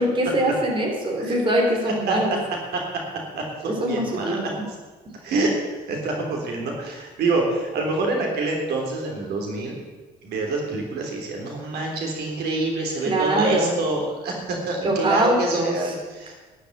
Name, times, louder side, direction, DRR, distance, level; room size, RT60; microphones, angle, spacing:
voice 1, 0.0-2.4 3.8-4.6 13.1-13.8 14.8-15.9, right 1 dB, 30° right, 0 dB, 3.3 m, -23 dB
voice 2, 2.1-2.4 2.7-3.0 3.3-4.5 5.2-5.6 5.9-9.8 10.2-16.3, right 2 dB, 70° right, 1 dB, 3.3 m, -26 dB
12.5 x 6.8 x 9.2 m, 1.3 s
cardioid pair, 110°, 17 cm